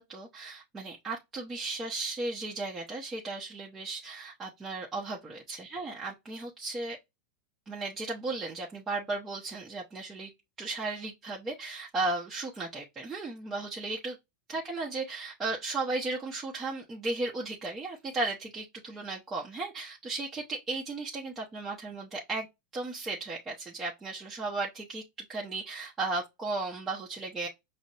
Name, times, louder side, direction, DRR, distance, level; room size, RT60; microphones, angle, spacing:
voice 1, 0.0-7.0 7.7-10.3 10.6-14.2 14.5-22.5 22.7-27.5, right 3 dB, 20° right, 0.8 m, -35 dB
5.1 x 2.0 x 2.8 m
hypercardioid pair, 115°, 0 cm